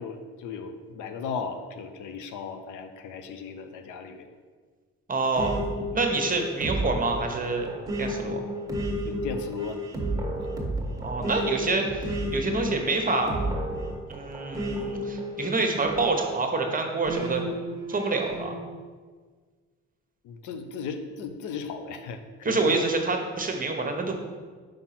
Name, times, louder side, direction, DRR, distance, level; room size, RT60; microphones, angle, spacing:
voice 1, 0.0-4.3 9.0-9.8 20.2-22.8, left 5 dB, 85° left, 7 dB, 0.7 m, -36 dB
voice 2, 5.1-5.6 5.9-7.7 8.0-8.4 11.0-13.4 14.1-17.4 17.9-18.6 22.4-24.2, right 3 dB, 30° right, 3 dB, 1.0 m, -27 dB
sound 1, 5.4-16.4 17.1-18.6, equal, 10° right, 1.4 m, -32 dB
5.0 x 4.3 x 5.8 m, 1.5 s
cardioid pair, 90°, 30 cm